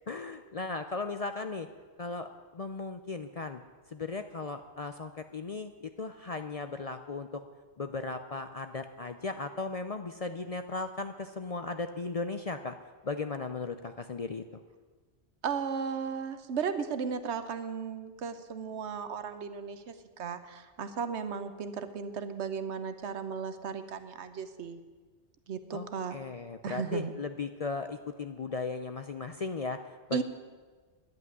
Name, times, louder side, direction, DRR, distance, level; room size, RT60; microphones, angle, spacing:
voice 1, 0.1-1.7 2.0-3.6 3.9-7.4 7.8-12.7 13.0-14.6 25.7-29.8 30.1-30.2, left 3 dB, 45° left, 8 dB, 0.5 m, -37 dB
voice 2, 15.4-24.8 25.5-26.2 26.6-27.1 30.1-30.2, right 6 dB, 75° right, 10 dB, 1.2 m, -35 dB
10.5 x 8.5 x 9.3 m, 1.4 s
omnidirectional pair, 1.2 m